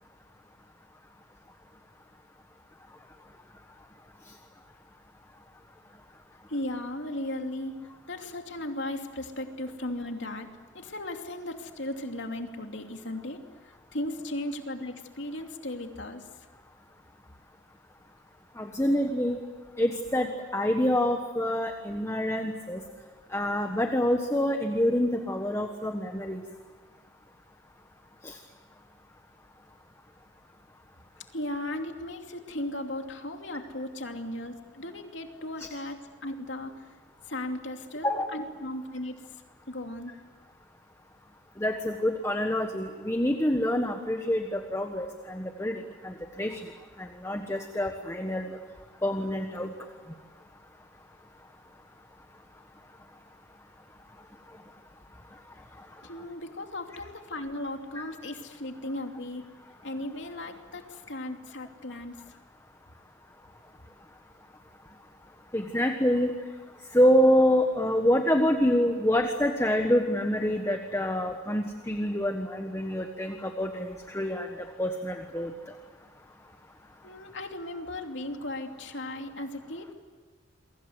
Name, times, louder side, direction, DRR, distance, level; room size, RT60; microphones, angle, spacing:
voice 1, 6.5-10.5 10.7-16.3 31.3-36.9 37.2-39.2 39.7-40.2 56.0-59.4 59.8-62.4 77.0-79.9, left 1 dB, 65° left, 4 dB, 2.9 m, -36 dB
voice 2, 18.6-19.4 19.8-22.8 23.3-26.4 28.2-28.4 38.0-38.3 41.6-46.6 47.0-48.6 49.0-49.7 57.9-58.0 65.5-66.3 66.9-75.5, equal, 15° left, 4 dB, 1.4 m, -26 dB
29.0 x 23.5 x 8.1 m, 1.4 s
head